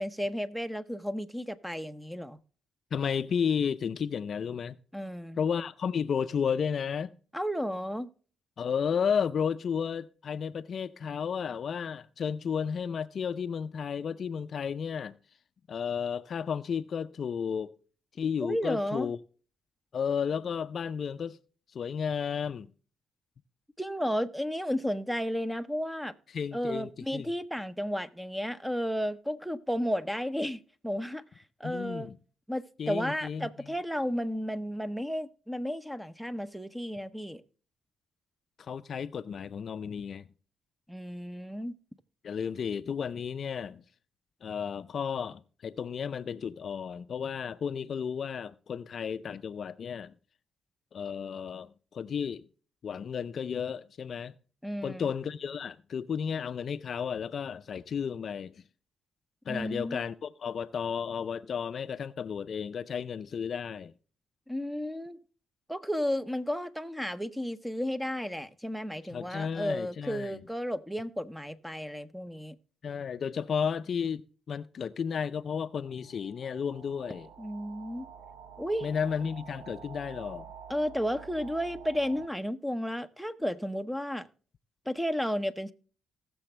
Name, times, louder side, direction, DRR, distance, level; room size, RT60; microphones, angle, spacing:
voice 1, 0.0-2.4 4.9-5.4 7.3-8.1 18.4-19.1 23.8-26.1 26.5-31.2 31.6-32.1 32.5-37.4 40.9-41.7 54.6-55.1 59.5-60.0 64.5-65.2 65.7-72.6 77.4-78.1 78.6-78.9 80.7-84.3 84.9-85.7, equal, ahead, 0.8 m, -33 dB
voice 2, 2.9-4.8 5.4-7.1 8.6-15.2 15.7-17.7 18.1-19.2 19.9-21.4 21.7-22.7 26.3-27.3 31.6-32.2 32.8-33.7 38.6-40.3 42.2-43.8 44.4-50.1 50.9-52.5 52.8-54.3 54.8-58.6 59.5-63.9 69.0-70.4 72.8-77.3 78.8-80.5, left 7 dB, 55° left, 0.5 m, -33 dB
sound 1, 75.6-82.3, right 7 dB, 80° right, 0.7 m, -49 dB
18.5 x 7.0 x 3.2 m
cardioid pair, 90°, 0 cm